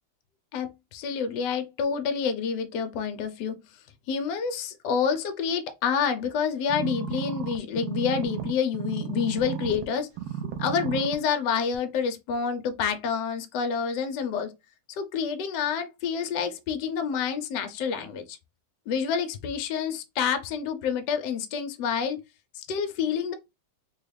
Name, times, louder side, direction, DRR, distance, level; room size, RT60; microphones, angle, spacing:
voice 1, 0.5-3.6 4.1-10.1 10.6-14.5 14.9-18.4 18.9-22.2 22.5-23.3, left 6 dB, 75° left, 1.2 m, -28 dB
sound 1, 6.7-9.9 10.2-11.2 11.7-11.8, right 9 dB, 70° right, 1.0 m, -33 dB
3.7 x 2.3 x 3.2 m
omnidirectional pair, 2.0 m